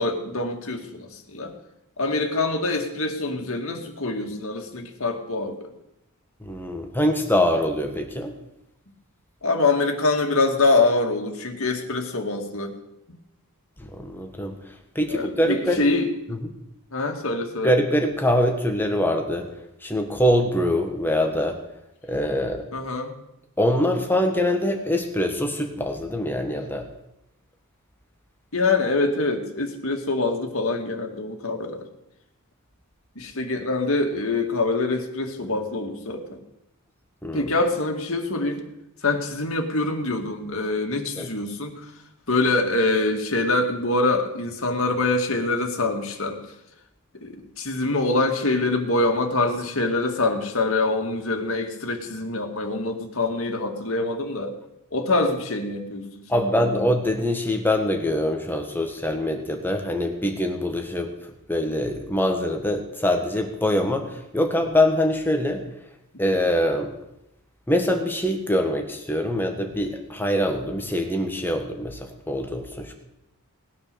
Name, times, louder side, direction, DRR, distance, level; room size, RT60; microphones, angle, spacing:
voice 1, 0.0-1.5 2.0-5.7 9.4-12.7 15.1-16.4 16.9-17.7 22.7-23.1 28.5-31.9 33.2-36.4 37.3-38.6 39.0-41.9 42.3-46.4 47.1-54.6 54.9-56.9, left 2 dB, 65° left, 4 dB, 2.2 m, -25 dB
voice 2, 6.4-8.3 13.9-14.6 14.9-15.8 17.6-19.5 19.8-21.6 22.1-22.6 23.6-26.9 37.2-37.5 41.2-41.3 56.3-61.1 61.5-65.6 66.2-66.9 67.7-72.9, left 1 dB, 10° left, 4 dB, 1.5 m, -24 dB
18.5 x 9.7 x 6.9 m, 0.85 s
head